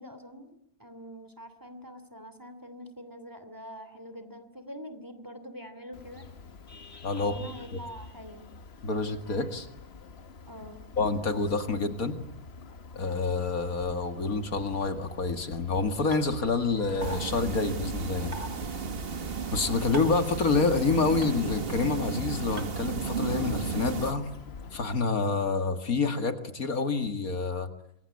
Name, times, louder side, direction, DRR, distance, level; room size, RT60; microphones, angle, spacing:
voice 1, 0.0-6.3 7.1-8.5 10.5-10.8, equal, 15° right, 10 dB, 2.8 m, -45 dB
Vehicle horn car horn honking, 5.9-25.0, left 4 dB, 45° left, 1.6 m, -46 dB
voice 2, 7.0-7.3 8.8-9.7 11.0-12.2 12.9-18.3 19.5-24.3 24.7-27.7, left 4 dB, 70° left, 8 dB, 2.4 m, -28 dB
sound 1, 16.1-16.2 17.0-17.2 18.3-18.5 19.9-20.2 21.2-21.3 22.6-22.7, equal, 80° right, 4.5 m, -37 dB
sound 2, 17.0-24.1, right 6 dB, 40° right, 1.4 m, -34 dB
27.0 x 23.0 x 8.5 m, 0.74 s
omnidirectional pair, 1.6 m